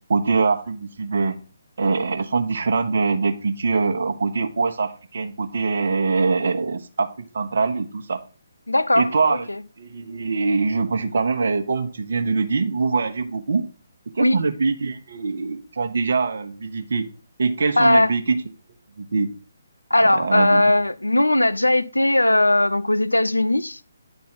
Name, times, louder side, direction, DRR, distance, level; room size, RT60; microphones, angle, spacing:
voice 1, 0.1-1.4 1.8-8.2 9.0-9.5 9.8-13.6 14.1-17.1 17.4-18.4 19.0-19.3 20.0-20.6, right 4 dB, 55° right, 1.0 m, -23 dB
voice 2, 8.7-9.6 14.2-14.4 17.8-18.1 19.9-23.8, left 1 dB, 80° left, 0.4 m, -19 dB
9.9 x 4.1 x 4.1 m
figure-of-eight pair, 140°, 0 cm